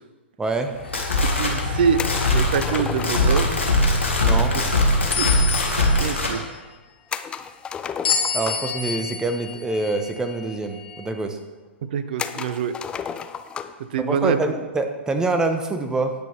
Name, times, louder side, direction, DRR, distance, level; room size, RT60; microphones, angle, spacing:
voice 1, 0.4-0.7 4.2-4.5 8.3-11.4 14.0-16.1, right 2 dB, 10° right, 7 dB, 1.0 m, -25 dB
sound 1, 0.7-6.4, left 2 dB, 80° left, 1.8 m, -21 dB
sound 2, 0.8-1.4 2.0-2.2 5.1-6.2 8.0-11.1, left 6 dB, 60° left, 1.5 m, -29 dB
voice 2, 1.2-2.0 2.3-3.6 4.5-4.6 5.2-5.3 6.0-6.5 11.8-12.8 13.8-14.5, right 7 dB, 50° right, 12 dB, 0.7 m, -25 dB
sound 3, 2.0-3.7 7.1-8.8 9.9-10.0 10.3-10.4 11.1-11.2 12.2-13.8, left 7 dB, 15° left, 0.4 m, -33 dB
18.5 x 6.2 x 3.4 m, 1.2 s
figure-of-eight pair, 105°, 6 cm